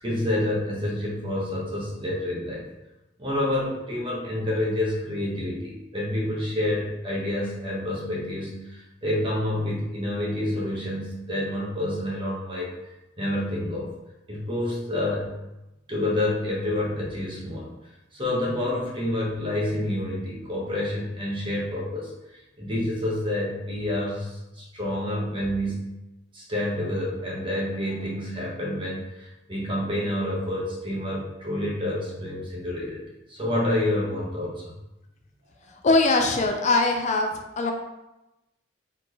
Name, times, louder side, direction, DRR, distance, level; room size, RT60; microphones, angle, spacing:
voice 1, 0.0-2.7 3.2-12.7 13.2-13.9 14.3-15.3 15.9-17.7 18.1-22.1 22.6-25.8 26.3-33.0 33.3-34.7, left 1 dB, 30° right, -4 dB, 1.2 m, -28 dB
voice 2, 35.8-37.7, left 3 dB, 40° left, 3 dB, 0.4 m, -22 dB
4.4 x 3.8 x 3.1 m, 0.96 s
head